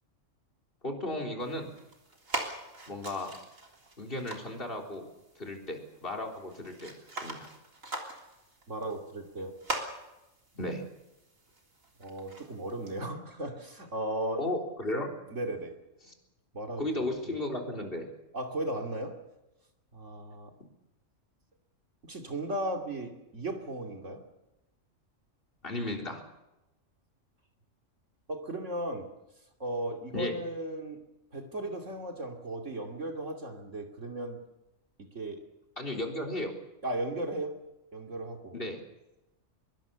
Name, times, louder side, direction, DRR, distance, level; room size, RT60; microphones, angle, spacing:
voice 1, 0.8-1.7 2.9-3.3 4.0-5.1 5.4-6.9 7.2-7.5 10.5-10.8 14.4-15.1 16.0-16.1 16.8-18.1 25.6-26.2 30.1-30.4 35.8-36.5 38.5-38.8, left 1 dB, 45° left, 5 dB, 4.1 m, -34 dB
sound 1, 1.4-13.0, right 2 dB, 90° right, 3.9 m, -43 dB
voice 2, 8.7-9.6 12.0-14.5 15.3-15.8 16.5-16.9 18.3-19.2 19.9-20.5 22.0-24.2 28.3-29.1 29.6-31.0 31.3-34.4 35.0-35.4 36.8-37.6 37.9-38.5, right 1 dB, 65° right, 3 dB, 3.1 m, -36 dB
24.0 x 22.5 x 7.0 m, 0.96 s
omnidirectional pair, 1.3 m